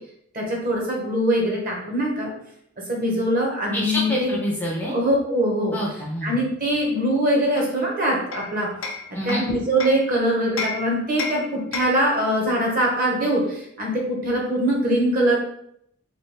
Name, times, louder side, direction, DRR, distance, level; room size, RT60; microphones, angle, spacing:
voice 1, 0.3-2.3 2.9-4.3 4.9-5.8 6.2-8.7 9.2-15.4, right 1 dB, 45° right, -2 dB, 0.9 m, -22 dB
voice 2, 3.7-5.0 5.7-6.4 9.1-9.5, equal, 10° left, -3 dB, 0.4 m, -27 dB
Hammer, 7.6-10.1 10.6-12.1, left 4 dB, 75° left, 0.5 m, -33 dB
3.2 x 2.3 x 3.3 m, 0.72 s
head